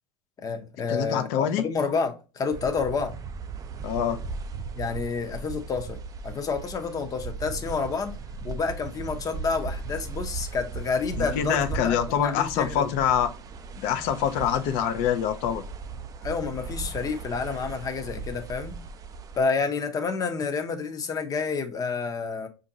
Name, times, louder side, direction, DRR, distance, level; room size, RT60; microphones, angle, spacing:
voice 1, 0.4-3.1 4.8-6.0 6.2-8.2 8.4-12.9 16.2-18.8 19.4-22.5, left 5 dB, 25° left, 0.7 m, -29 dB
voice 2, 0.9-1.6 3.8-4.2 11.2-13.3 13.8-15.6, left 9 dB, 65° left, 0.6 m, -25 dB
sound 1, 2.5-19.4, right 4 dB, 25° right, 0.4 m, -37 dB
5.0 x 2.6 x 2.7 m
supercardioid pair, 110°, 14 cm